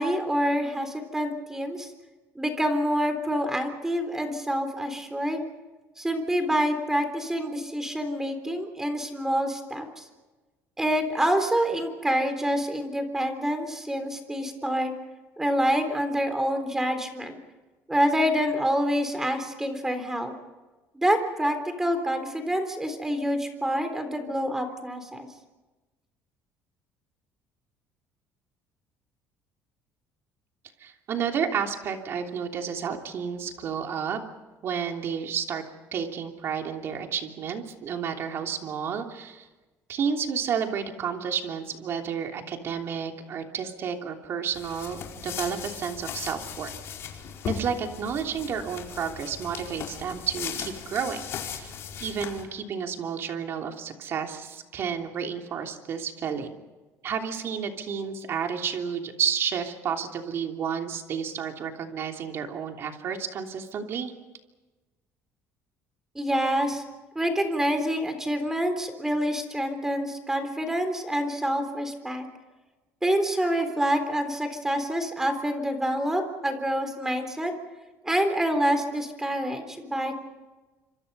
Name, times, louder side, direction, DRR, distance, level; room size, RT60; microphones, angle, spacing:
voice 1, 0.0-1.9 2.4-5.4 6.0-10.1 10.8-14.9 15.4-17.4 17.9-20.3 20.9-25.3 66.2-66.8 67.2-72.3 73.0-77.5 78.0-80.1, equal, 10° right, 7 dB, 3.7 m, -27 dB
voice 2, 30.8-34.2 34.6-35.6 35.9-39.5 39.9-46.7 47.5-56.6 57.0-64.1, right 7 dB, 50° right, 3 dB, 3.1 m, -31 dB
sound 1, 44.5-52.4, left 7 dB, 55° left, 4.7 m, -37 dB
27.5 x 26.0 x 5.5 m, 1.2 s
cardioid pair, 135°, 5 cm